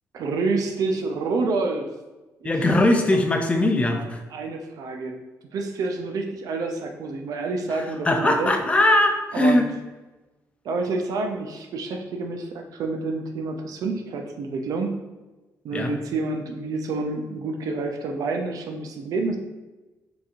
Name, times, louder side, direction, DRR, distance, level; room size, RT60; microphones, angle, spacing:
voice 1, 0.1-1.9 2.4-2.5 3.9-5.1 5.5-8.5 9.3-9.7 10.6-15.0 15.6-19.4, right 3 dB, 70° right, 3 dB, 0.5 m, -28 dB
voice 2, 2.4-4.2 8.0-9.7 15.7-15.9, left 1 dB, 20° left, 4 dB, 0.5 m, -20 dB
4.1 x 2.9 x 2.4 m, 1.1 s
cardioid pair, 100°, 7 cm